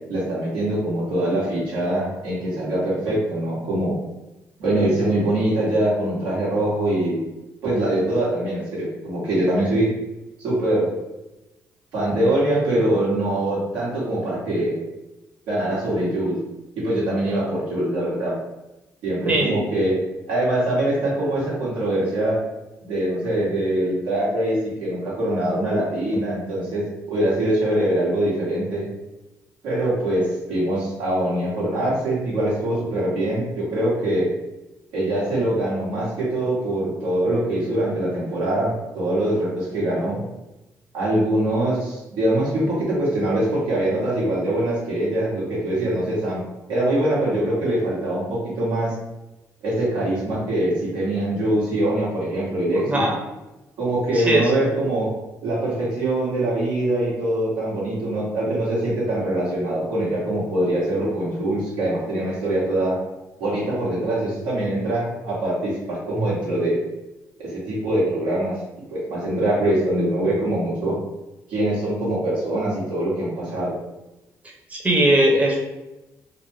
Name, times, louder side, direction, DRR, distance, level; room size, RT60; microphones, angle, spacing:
voice 1, 0.1-3.9 4.6-7.2 7.6-9.9 10.4-10.9 11.9-14.8 15.5-16.4 16.8-18.3 19.0-19.9 20.3-22.4 22.8-26.8 27.1-28.9 29.6-30.2 30.5-34.3 34.9-40.2 40.9-46.4 46.7-48.9 49.6-53.1 53.8-55.1 55.4-62.9 63.4-66.8 67.4-68.6 68.9-70.9 71.5-73.7, right 1 dB, 80° right, -7 dB, 1.2 m, -23 dB
voice 2, 19.3-19.6 52.9-53.1 54.1-54.4 74.7-75.6, right 1 dB, 20° right, -2 dB, 0.7 m, -19 dB
2.5 x 2.1 x 3.2 m, 1.0 s
supercardioid pair, 55°, 7 cm